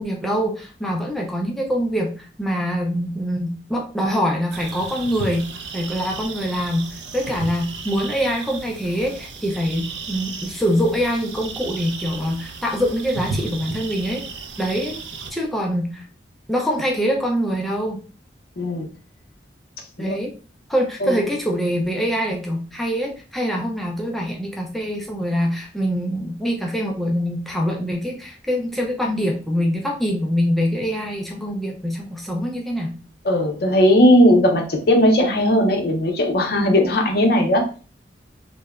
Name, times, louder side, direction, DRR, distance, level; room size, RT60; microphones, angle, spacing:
voice 1, 0.0-5.5 5.7-14.3 14.6-15.0 15.3-16.0 16.5-18.0 20.0-20.3 20.7-33.0, equal, ahead, -1 dB, 0.3 m, -24 dB
sound 1, 4.5-15.3, right 4 dB, 75° right, 0.4 m, -34 dB
voice 2, 18.6-18.9 20.0-20.2 21.0-21.1 33.2-37.7, equal, 55° left, 3 dB, 0.5 m, -17 dB
2.8 x 2.1 x 2.3 m, 0.37 s
head